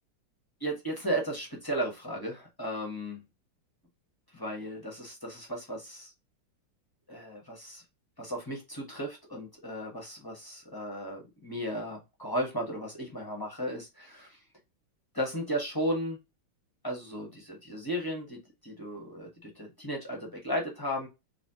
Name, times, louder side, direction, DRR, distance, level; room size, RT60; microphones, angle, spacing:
voice 1, 0.6-3.2 4.3-6.1 7.1-7.8 8.2-14.4 15.1-16.2 16.8-21.1, equal, 20° left, 0 dB, 0.6 m, -35 dB
4.1 x 3.0 x 2.8 m, 0.24 s
omnidirectional pair, 2.1 m